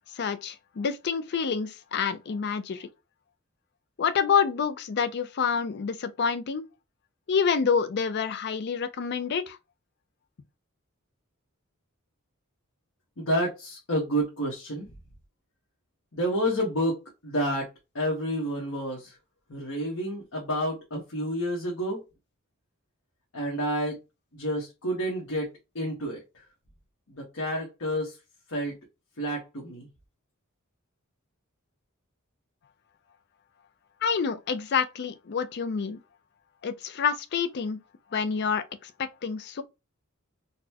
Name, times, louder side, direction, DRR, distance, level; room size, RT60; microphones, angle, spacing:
voice 1, 0.1-2.9 4.0-6.6 7.3-9.6 34.0-36.0 36.6-37.8 38.1-39.6, left 6 dB, 50° left, 0.4 m, -28 dB
voice 2, 13.2-14.9 16.1-17.7 17.9-19.2 19.5-22.0 23.3-24.0 24.3-25.5 25.7-26.4 27.1-28.2 28.5-28.8 29.2-29.9, equal, 70° left, 1.2 m, -29 dB
4.0 x 2.2 x 2.8 m
head